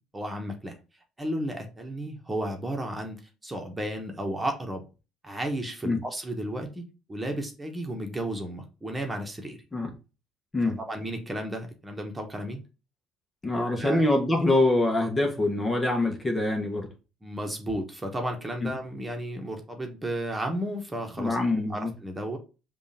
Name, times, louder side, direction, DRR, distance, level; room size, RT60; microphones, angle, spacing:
voice 1, 0.1-0.7 1.2-4.8 5.2-6.8 7.1-9.6 10.6-12.6 13.6-14.0 17.2-22.4, right 1 dB, 15° right, 1.4 m, -33 dB
voice 2, 13.4-16.9 18.6-18.7 21.2-21.9, left 2 dB, 25° left, 1.3 m, -25 dB
5.2 x 2.7 x 3.4 m
supercardioid pair, 80°, 0 cm